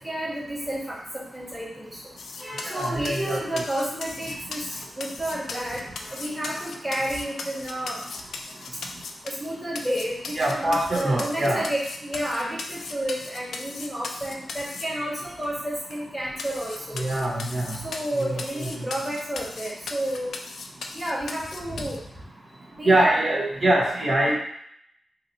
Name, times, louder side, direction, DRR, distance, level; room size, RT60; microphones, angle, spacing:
voice 1, 0.0-2.1 2.4-8.0 9.2-17.0 17.7-20.3 20.9-22.0 22.7-23.1, right 1 dB, 10° right, -5 dB, 1.5 m, -31 dB
sound 1, 2.2-9.5 9.7-14.8 15.4-15.5 15.9-16.0 16.4-22.0, left 4 dB, 85° left, 0.4 m, -37 dB
voice 2, 2.6-3.6 10.4-11.6 16.9-17.8 18.2-18.7 22.8-24.4, right 1 dB, 50° right, -3 dB, 1.1 m, -23 dB
3.0 x 2.8 x 4.0 m, 0.70 s
cardioid pair, 80°, 0 cm